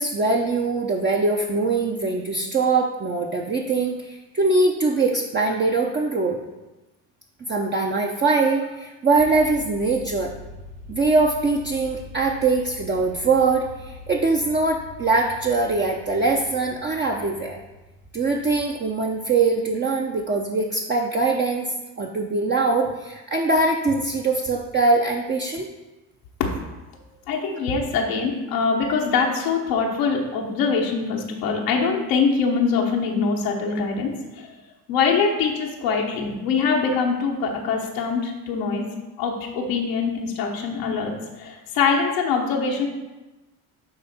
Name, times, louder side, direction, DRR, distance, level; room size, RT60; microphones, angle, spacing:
voice 1, 0.0-6.4 7.5-10.3 10.9-17.6 18.1-25.7, right 3 dB, 25° right, 0 dB, 0.7 m, -22 dB
sound 1, 9.2-19.8, left 2 dB, 65° right, 1.1 m, -43 dB
voice 2, 27.3-34.5 34.9-38.9 39.2-42.9, left 5 dB, 85° left, -1 dB, 1.0 m, -23 dB
8.9 x 3.4 x 4.1 m, 1.1 s
hypercardioid pair, 65°, 43 cm